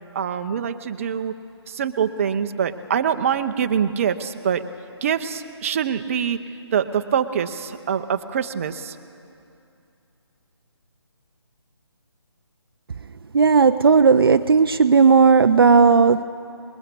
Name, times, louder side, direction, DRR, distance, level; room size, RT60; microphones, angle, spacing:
voice 1, 0.1-1.3 1.7-4.6 5.0-6.4 6.7-9.0, right 8 dB, 30° right, 8 dB, 0.9 m, -24 dB
voice 2, 13.3-16.2, right 5 dB, 55° right, 9 dB, 0.6 m, -14 dB
28.0 x 21.0 x 8.4 m, 2.7 s
figure-of-eight pair, 150°, 15 cm